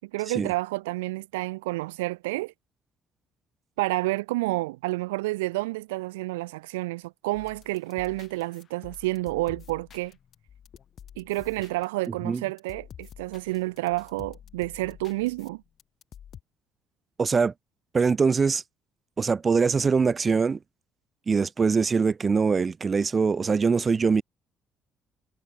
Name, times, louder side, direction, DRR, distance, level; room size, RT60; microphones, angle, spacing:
voice 1, 0.1-2.5 3.8-10.1 11.2-15.6, right 20 dB, 75° right, 0.5 m, -29 dB
sound 1, 7.3-12.1 12.4-16.4, left 9 dB, 50° left, 5.1 m, -49 dB
voice 2, 12.1-12.4 17.2-17.5 17.9-18.6 19.2-20.6 21.3-24.2, right 5 dB, 35° right, 0.6 m, -23 dB
figure-of-eight pair, 45°, 0 cm